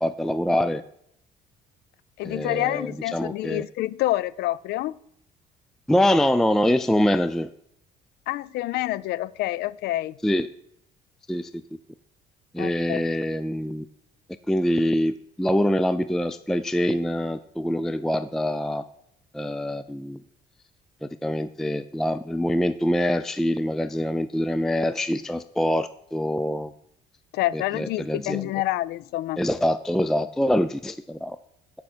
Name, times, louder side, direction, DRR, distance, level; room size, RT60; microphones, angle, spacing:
voice 1, 0.0-0.8 2.2-3.6 5.9-7.5 10.2-10.5 11.3-11.6 12.5-13.9 14.5-18.8 19.3-20.2 21.0-26.7 27.5-28.5 29.4-31.4, equal, ahead, 12 dB, 0.3 m, -24 dB
voice 2, 2.2-5.0 8.3-10.2 12.6-13.1 27.3-29.4, left 16 dB, 75° left, 20 dB, 0.4 m, -27 dB
8.7 x 5.5 x 6.1 m, 0.72 s
cardioid pair, 110°, 17 cm